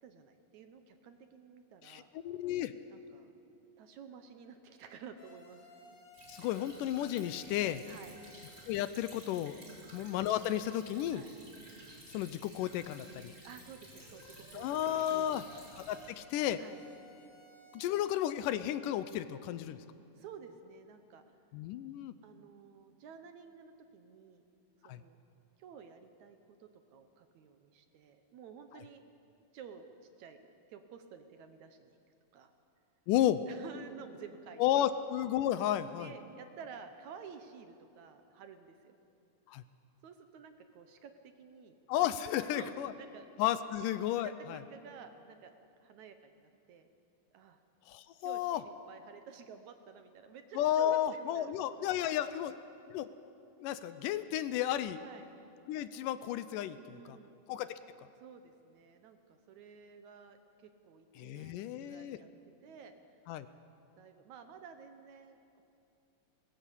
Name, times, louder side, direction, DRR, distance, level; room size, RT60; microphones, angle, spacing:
voice 1, 0.0-2.1 2.9-3.3 3.8-5.6 7.9-8.2 9.7-9.9 11.1-11.3 13.4-15.6 16.6-16.8 20.2-21.2 22.2-24.4 24.8-25.2 25.6-29.0 29.5-29.9 30.2-30.4 30.7-32.0 32.3-32.5 33.5-34.9 36.0-39.0 40.0-41.7 42.4-43.3 44.2-45.5 45.8-46.9 47.3-47.6 48.2-52.4 55.0-55.3 56.8-57.4 58.2-62.3 62.6-62.9 64.0-65.6, right 6 dB, 70° right, 8 dB, 2.1 m, -52 dB
voice 2, 1.8-2.7 6.3-7.8 8.7-9.5 9.9-11.2 12.1-13.3 14.5-15.4 15.9-16.6 17.7-19.8 21.5-22.1 24.8-25.0 33.1-33.4 34.6-36.1 39.5-39.6 41.9-42.9 43.4-44.6 47.9-48.6 50.6-52.5 52.9-53.1 53.6-55.0 55.7-57.2 57.5-57.7 61.2-62.2 63.3-63.5, left 11 dB, 80° left, 13 dB, 2.2 m, -33 dB
sound 1, 5.2-8.6 14.0-18.3, left 2 dB, 50° left, 3.0 m, -58 dB
Stream / Trickle dribble, 6.1-16.1, right 1 dB, 25° right, 5.1 m, -54 dB
20.0 x 19.0 x 8.4 m, 2.7 s
omnidirectional pair, 3.9 m